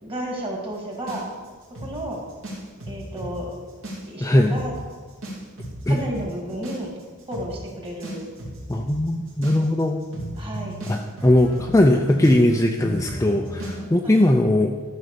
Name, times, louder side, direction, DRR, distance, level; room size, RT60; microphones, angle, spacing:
voice 1, 0.0-1.2 1.8-2.2 2.9-3.5 4.1-4.7 5.9-7.0 7.3-8.3 10.4-10.8 14.0-14.2, right 1 dB, 25° right, -1 dB, 2.2 m, -32 dB
sound 1, 1.1-3.3 3.7-4.3 4.5-4.7 5.2-13.8, equal, 65° right, 2.9 m, -34 dB
voice 2, 4.2-4.5 5.9-6.0 8.7-10.0 10.9-14.7, left 1 dB, 15° left, 3 dB, 0.4 m, -19 dB
13.0 x 5.3 x 6.8 m, 1.4 s
head